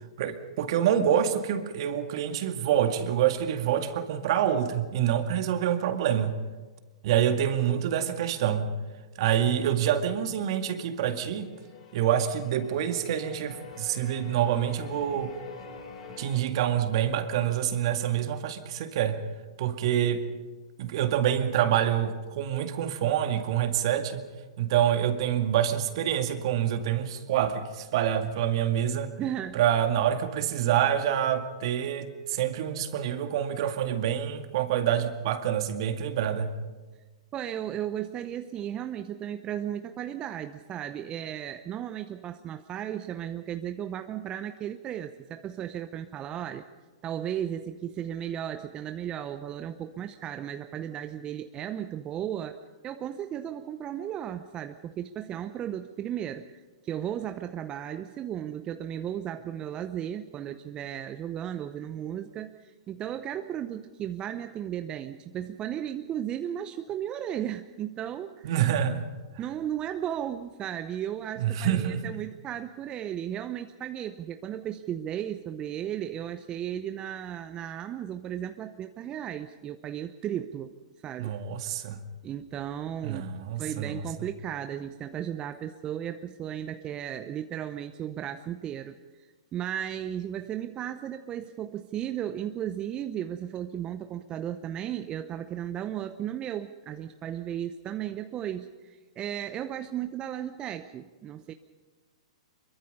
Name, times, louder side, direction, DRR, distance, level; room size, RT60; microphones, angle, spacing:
voice 1, 0.2-6.3 7.0-8.7 9.2-11.5 11.9-15.3 16.2-19.2 19.6-20.2 20.8-24.2 24.6-29.1 29.5-36.5 68.4-69.1 71.4-72.0 81.2-82.0 83.0-83.9, right 10 dB, 55° right, 7 dB, 2.1 m, -26 dB
sound 1, 11.1-16.4, left 4 dB, 65° left, 6.4 m, -46 dB
voice 2, 29.2-29.6 37.3-46.6 47.0-52.6 52.8-68.6 69.4-80.7 81.0-81.3 82.2-83.2 83.6-101.5, right 10 dB, 25° right, 9 dB, 0.8 m, -35 dB
25.0 x 22.5 x 5.5 m, 1.3 s
hypercardioid pair, 115°, 3 cm